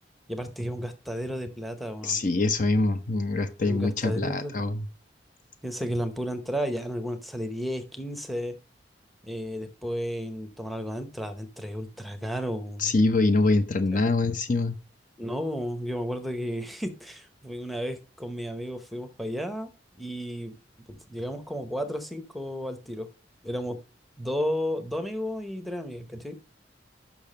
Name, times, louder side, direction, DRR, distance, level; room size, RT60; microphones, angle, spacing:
voice 1, 0.3-2.2 3.6-4.6 5.6-8.6 9.2-12.9 13.9-14.0 15.2-19.7 20.0-20.6 20.9-23.1 23.4-23.8 24.2-26.4, equal, ahead, 0.9 m, -33 dB
voice 2, 2.0-4.9 12.8-14.7, left 2 dB, 45° left, 0.7 m, -24 dB
7.0 x 5.8 x 5.4 m
head